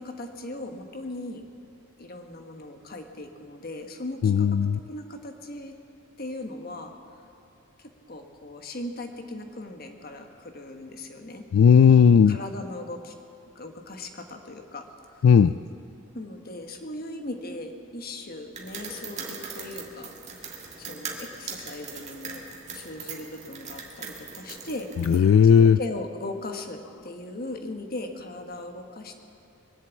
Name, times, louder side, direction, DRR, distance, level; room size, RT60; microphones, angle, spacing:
voice 1, 0.0-1.4 2.0-4.5 4.7-5.7 6.2-6.9 7.8-11.4 12.3-13.1 13.5-14.9 15.1-15.2 16.1-22.4 22.7-24.9 25.4-29.1, left 2 dB, 45° left, 5 dB, 1.3 m, -38 dB
voice 2, 4.2-4.7 11.5-12.4 15.2-15.5 25.1-25.8, left 7 dB, 75° left, 13 dB, 0.3 m, -16 dB
sound 1, 18.5-25.2, right 5 dB, 35° right, 1.9 m, -40 dB
22.0 x 7.5 x 8.3 m, 2.6 s
head